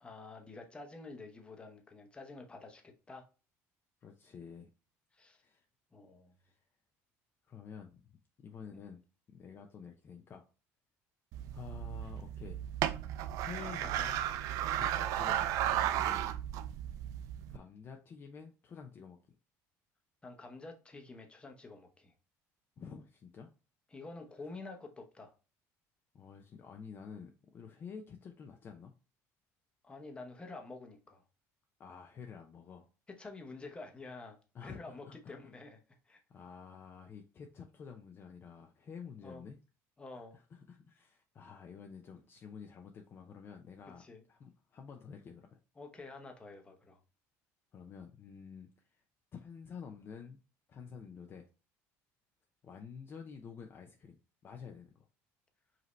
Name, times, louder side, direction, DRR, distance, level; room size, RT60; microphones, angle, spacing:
voice 1, 0.0-3.2 5.1-5.4 5.9-6.3 8.7-8.8 20.2-22.1 23.9-25.3 29.8-31.2 33.1-34.4 34.6-36.2 39.2-39.4 40.0-40.4 44.0-44.2 45.8-47.0, left 3 dB, 15° left, 0.9 m, -49 dB
voice 2, 4.0-4.7 5.4-5.7 6.4-6.6 7.5-8.0 8.4-9.0 9.3-10.5 11.5-12.6 13.4-14.3 14.8-16.3 17.5-19.2 22.8-23.5 26.1-28.9 31.8-32.9 34.5-35.4 36.3-39.6 40.3-44.0 44.3-45.6 47.7-49.0 49.3-50.4 50.7-51.5 52.6-54.2 54.4-55.1, left 6 dB, 40° left, 0.6 m, -49 dB
sound 1, 11.3-17.6, right 11 dB, 70° right, 0.3 m, -34 dB
5.1 x 2.8 x 3.1 m
cardioid pair, 115°, 6 cm